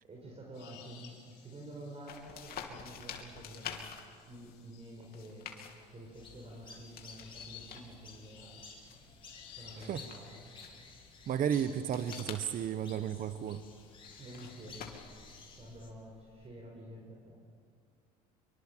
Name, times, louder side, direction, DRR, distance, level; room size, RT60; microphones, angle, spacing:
voice 1, 0.0-3.9 4.3-5.6 5.9-8.7 9.5-10.6 14.2-15.0 15.4-17.4, right 1 dB, 35° right, 0 dB, 5.4 m, -49 dB
sound 1, 0.5-15.5, left 8 dB, 75° left, 5.5 m, -59 dB
sound 2, 2.1-16.5, left 7 dB, 55° left, 3.0 m, -50 dB
sound 3, 6.1-15.9, left 4 dB, 30° left, 5.3 m, -54 dB
voice 2, 11.3-13.6, right 9 dB, 50° right, 11 dB, 1.0 m, -33 dB
24.5 x 24.0 x 7.6 m, 2.1 s
supercardioid pair, 90°, 18 cm